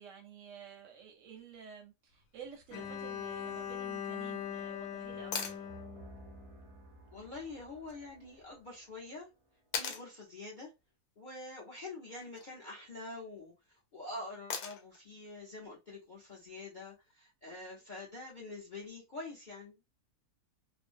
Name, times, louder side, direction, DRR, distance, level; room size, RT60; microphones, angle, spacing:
voice 1, 0.0-5.7, right 7 dB, 70° right, 0.8 m, -51 dB
Bowed string instrument, 2.7-6.8, left 8 dB, 70° left, 1.0 m, -41 dB
sound 1, 2.7-9.8, right 1 dB, 50° right, 0.4 m, -56 dB
sound 2, 5.3-5.6 7.9-8.0 9.7-10.1 12.1-12.5 14.5-15.0 17.1-17.2, left 6 dB, 90° left, 1.2 m, -38 dB
voice 2, 7.1-9.3 9.7-10.7 11.2-19.8, left 2 dB, 50° left, 0.5 m, -46 dB
2.5 x 2.0 x 2.4 m
omnidirectional pair, 1.6 m